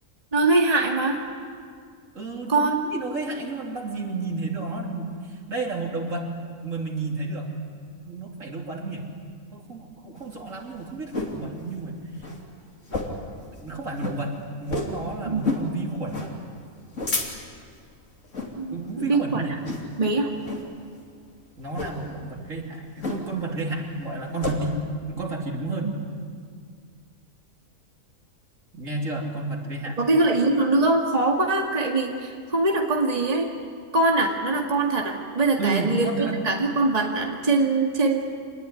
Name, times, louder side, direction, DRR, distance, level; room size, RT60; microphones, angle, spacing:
voice 1, 0.3-1.2 2.5-2.8 15.2-15.5 18.6-19.4 20.0-20.3 25.8-25.9 30.0-33.5 33.9-36.1 36.4-38.2, right 2 dB, 30° right, 1 dB, 2.1 m, -22 dB
voice 2, 2.2-6.3 6.6-7.5 8.0-9.1 9.5-12.0 13.5-14.3 14.6-16.3 18.7-19.6 21.6-24.8 25.1-25.9 28.7-30.0 35.6-36.4, right 3 dB, 70° right, 0 dB, 3.5 m, -31 dB
sound 1, 10.2-11.4 11.8-11.9 12.1-12.4 12.8-13.3 13.6-13.7 14.0-14.2 14.7-15.0 15.4-15.7 16.1-16.3 16.7-17.6 18.2-18.5 19.0-19.2 19.6-20.0 20.4-20.7 21.7-22.0 23.0-23.5 23.8-24.6, left 3 dB, 65° left, 3.3 m, -30 dB
26.0 x 20.0 x 9.8 m, 2.1 s
omnidirectional pair, 1.4 m